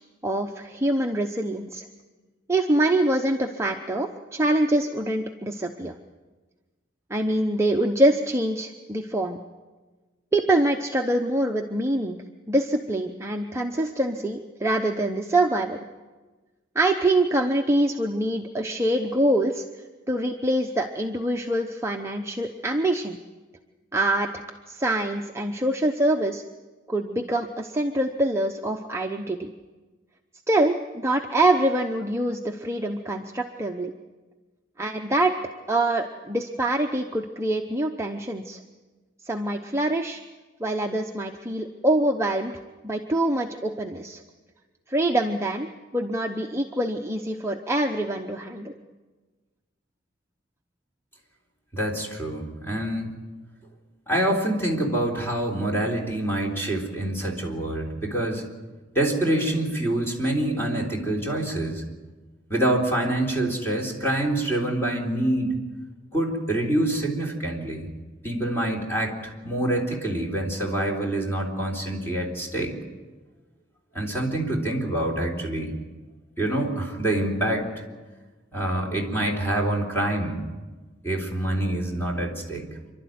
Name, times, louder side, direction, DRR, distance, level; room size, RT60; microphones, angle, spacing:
voice 1, 0.2-1.8 2.5-5.9 7.1-9.4 10.3-12.2 12.5-15.8 16.7-19.6 20.1-23.2 23.9-24.3 24.7-26.4 26.9-29.5 30.5-33.9 34.8-35.3 35.7-38.6 39.2-40.2 40.6-42.5 42.8-44.2 44.9-45.7 45.9-48.7, right 1 dB, 15° right, 2 dB, 0.8 m, -25 dB
voice 2, 51.7-53.1 54.1-58.4 59.0-61.8 62.5-65.6 66.1-67.9 68.2-72.7 73.9-75.8 76.4-77.7 78.5-80.5 81.0-82.7, right 1 dB, 10° left, 0 dB, 3.7 m, -26 dB
27.5 x 12.0 x 9.3 m, 1.3 s
head